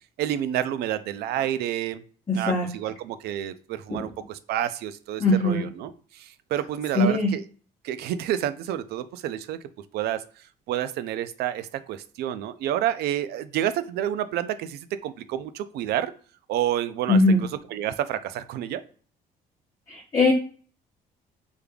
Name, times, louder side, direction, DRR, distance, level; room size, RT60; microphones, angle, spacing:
voice 1, 0.2-2.0 2.3-7.4 7.8-9.6 9.9-10.2 10.7-16.1 16.5-18.8, right 11 dB, 70° right, 12 dB, 0.4 m, -29 dB
voice 2, 2.3-2.7 3.9-4.0 5.2-5.7 6.9-7.3 17.1-17.4 19.9-20.3, left 2 dB, 25° left, -5 dB, 0.9 m, -21 dB
3.5 x 3.2 x 2.3 m, 0.42 s
cardioid pair, 110°, 17 cm